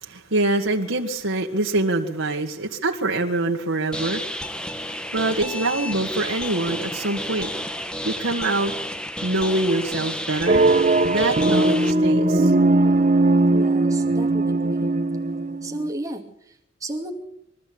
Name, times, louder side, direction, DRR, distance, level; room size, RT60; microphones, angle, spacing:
voice 1, 0.0-7.6 8.0-8.7 9.2-10.6 11.0-12.5, right 2 dB, 80° right, 1.7 m, -25 dB
sound 1, 3.9-11.9, left 1 dB, 5° left, 1.2 m, -31 dB
sound 2, 10.5-15.9, right 2 dB, 40° right, 0.9 m, -19 dB
voice 2, 13.5-14.9 15.6-17.1, right 1 dB, 15° right, 2.5 m, -34 dB
22.5 x 13.5 x 8.6 m
head